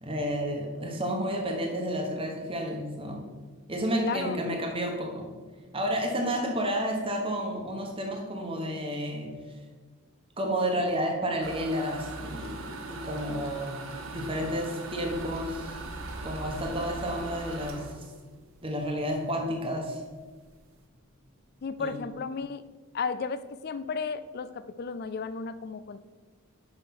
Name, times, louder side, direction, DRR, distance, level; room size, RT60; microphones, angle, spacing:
voice 1, 0.0-3.2 3.7-5.3 5.7-9.4 10.4-13.9 14.1-15.8 16.2-18.0 18.6-20.0 21.8-22.0, equal, 25° right, 1 dB, 1.1 m, -31 dB
voice 2, 4.0-4.4 6.2-6.3 21.6-22.6 22.9-26.0, left 5 dB, 45° left, 14 dB, 0.3 m, -34 dB
sound 1, 11.4-19.2 19.6-19.7 20.1-20.2 20.4-20.8, right 3 dB, 65° right, 0.9 m, -40 dB
sound 2, 15.0-22.5, left 1 dB, 25° left, 0.8 m, -50 dB
5.8 x 5.7 x 5.8 m, 1.4 s
head